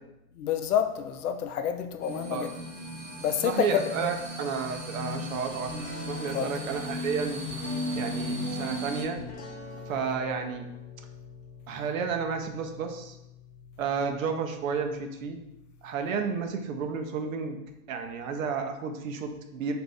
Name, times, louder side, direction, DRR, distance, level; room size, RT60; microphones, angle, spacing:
voice 1, 0.4-2.5 3.2-3.7 6.3-6.5, left 8 dB, 75° left, 7 dB, 0.5 m, -28 dB
sound 1, 2.0-9.0, left 1 dB, ahead, 0.4 m, -36 dB
voice 2, 3.4-5.7 6.1-7.4 7.9-9.2 9.9-10.7 11.7-13.2 13.8-15.4 15.8-17.6 17.9-19.7, right 5 dB, 60° right, 5 dB, 0.6 m, -31 dB
sound 2, 5.7-17.1, left 3 dB, 40° left, 1.0 m, -46 dB
2.6 x 2.5 x 3.3 m, 0.89 s
hypercardioid pair, 130°, 46 cm